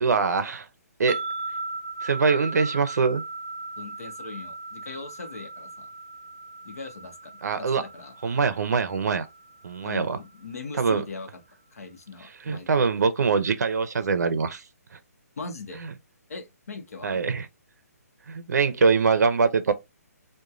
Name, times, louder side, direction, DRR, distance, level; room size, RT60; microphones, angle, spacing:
voice 1, 0.0-0.7 1.0-1.2 2.0-3.2 7.4-7.8 8.2-9.3 9.6-10.2 10.8-11.0 12.5-14.6 17.0-17.5 18.3-19.7, right 5 dB, 80° right, 0.5 m, -23 dB
sound 1, 1.1-10.3, right 3 dB, 35° right, 0.5 m, -38 dB
voice 2, 3.8-5.9 6.6-8.1 9.8-11.3 11.7-12.9 15.4-15.9 16.3-17.2, left 4 dB, 65° left, 0.9 m, -40 dB
3.0 x 2.2 x 2.4 m
hypercardioid pair, 180°, 9 cm